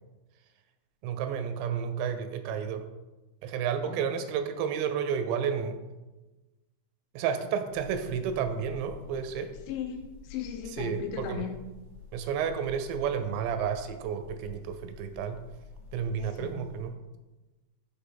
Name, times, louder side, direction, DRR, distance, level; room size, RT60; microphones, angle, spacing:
voice 1, 1.0-2.9 3.4-5.8 7.1-9.5 10.8-11.4 12.1-15.4 15.9-16.9, right 7 dB, 85° right, 8 dB, 2.8 m, -31 dB
sound 1, 7.7-16.9, left 8 dB, 70° left, 3.0 m, -49 dB
voice 2, 9.7-11.6 16.2-16.6, left 8 dB, 90° left, 4 dB, 2.9 m, -37 dB
8.0 x 3.3 x 3.7 m, 1.1 s
omnidirectional pair, 5.1 m